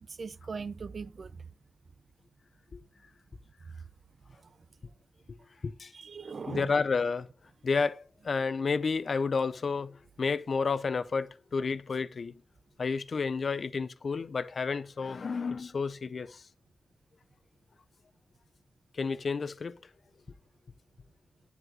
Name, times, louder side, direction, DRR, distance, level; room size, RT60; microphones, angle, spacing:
voice 1, 0.1-1.4 5.9-6.7, right 5 dB, 55° right, 0.5 m, -39 dB
voice 2, 6.5-7.3 7.6-12.3 12.8-16.4 18.9-19.7, left 4 dB, 55° left, 0.5 m, -31 dB
9.5 x 7.9 x 3.8 m
wide cardioid pair, 100°, 0 cm